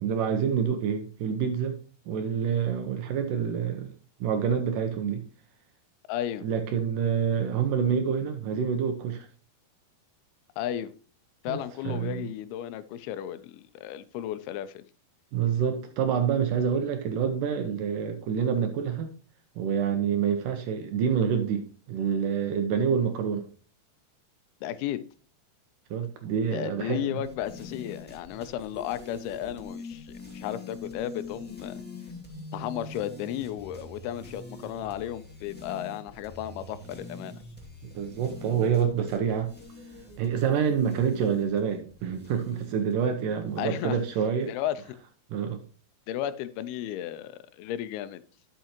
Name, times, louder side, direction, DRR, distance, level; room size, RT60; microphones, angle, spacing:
voice 1, 0.0-1.8 2.1-5.3 6.4-9.3 11.5-11.6 11.8-12.3 15.3-19.1 19.6-23.5 25.9-27.2 37.8-39.5 40.2-44.5 45.3-45.6, right 7 dB, 75° right, 2.1 m, -27 dB
voice 2, 6.1-6.5 10.6-10.9 11.4-14.9 24.6-25.0 26.5-31.8 32.5-37.4 43.6-44.0 44.5-44.8 46.1-48.2, left 11 dB, 85° left, 2.5 m, -34 dB
sound 1, 27.2-44.5, left 3 dB, 5° left, 0.9 m, -44 dB
12.0 x 5.8 x 2.9 m
omnidirectional pair, 4.5 m